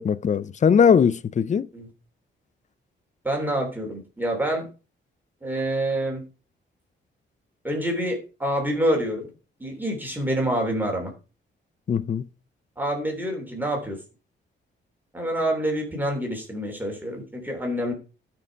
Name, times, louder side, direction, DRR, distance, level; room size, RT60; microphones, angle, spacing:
voice 1, 0.0-1.7 11.9-12.3, left 7 dB, 35° left, 0.5 m, -20 dB
voice 2, 3.2-4.7 5.4-6.2 7.6-9.3 9.6-11.1 12.8-14.0 15.1-17.9, right 1 dB, 10° right, 3.3 m, -27 dB
13.0 x 6.0 x 4.6 m
cardioid pair, 110°, 20 cm